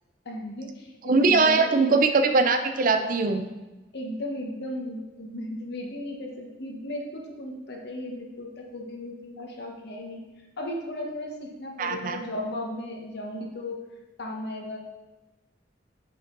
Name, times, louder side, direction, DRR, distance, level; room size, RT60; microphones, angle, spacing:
voice 1, 0.2-2.0 3.9-10.2 10.6-13.8 14.2-14.8, left 1 dB, 60° left, 1 dB, 1.1 m, -36 dB
voice 2, 1.0-3.4 11.8-12.2, right 3 dB, 45° right, 7 dB, 0.5 m, -21 dB
6.1 x 5.1 x 3.9 m, 1.1 s
head